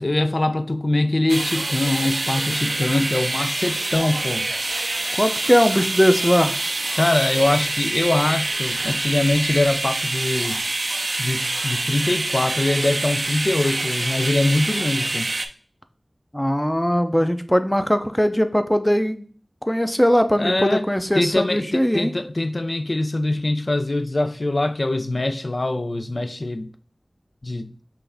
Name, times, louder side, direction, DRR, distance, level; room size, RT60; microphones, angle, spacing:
voice 1, 0.0-4.5 7.0-10.6 11.2-15.3 20.4-20.8 21.1-26.7 27.4-27.7, left 2 dB, 65° left, 0.4 m, -23 dB
sound 1, 1.3-15.5, right 2 dB, 80° right, 0.4 m, -26 dB
voice 2, 5.1-6.5 16.3-19.3 19.7-22.1, equal, 10° left, 0.5 m, -20 dB
5.8 x 2.6 x 3.3 m
wide cardioid pair, 45°, 0 cm